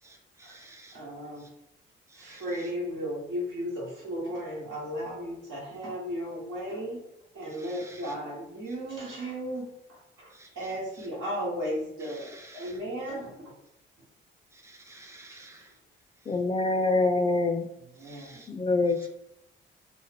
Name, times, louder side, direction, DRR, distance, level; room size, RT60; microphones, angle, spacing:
voice 1, 0.0-1.0 1.4-1.5 2.1-2.7 7.5-8.1 10.3-10.6 11.0-11.1 12.0-12.8 14.5-15.8 16.3-16.4 18.0-18.5 19.0-19.1, right 2 dB, 15° right, 0.6 m, -52 dB
voice 2, 0.9-1.4 2.1-7.0 7.3-13.3 17.9-18.4, equal, 90° right, 1.3 m, -35 dB
voice 3, 16.3-17.7 18.5-19.1, left 3 dB, 25° left, 0.3 m, -25 dB
3.0 x 2.1 x 3.3 m
cardioid pair, 90°, 20 cm